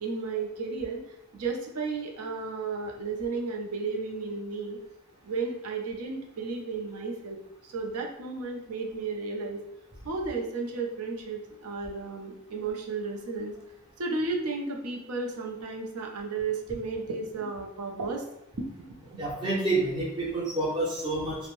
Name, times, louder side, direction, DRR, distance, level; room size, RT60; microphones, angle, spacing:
voice 1, 0.0-1.0 1.3-4.8 5.2-7.4 7.6-9.6 10.0-13.5 14.0-18.3 18.6-18.7 19.0-19.1, right 4 dB, 85° right, 2 dB, 0.5 m, -33 dB
voice 2, 19.2-21.4, right 2 dB, 20° right, -6 dB, 0.4 m, -28 dB
2.5 x 2.0 x 3.0 m, 0.87 s
head